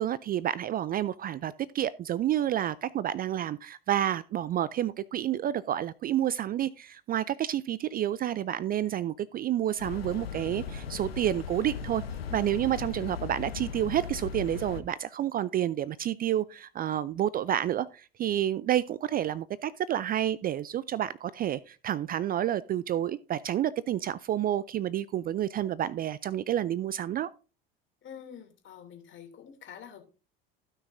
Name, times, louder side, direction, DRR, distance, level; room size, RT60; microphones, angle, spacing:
voice 1, 0.0-12.0 12.3-27.3, right 11 dB, 30° right, 0.4 m, -29 dB
sound 1, 9.8-14.8, left 6 dB, 85° left, 0.9 m, -38 dB
voice 2, 28.0-30.0, left 8 dB, 40° left, 2.8 m, -47 dB
16.0 x 6.1 x 2.6 m
figure-of-eight pair, 70°, 29 cm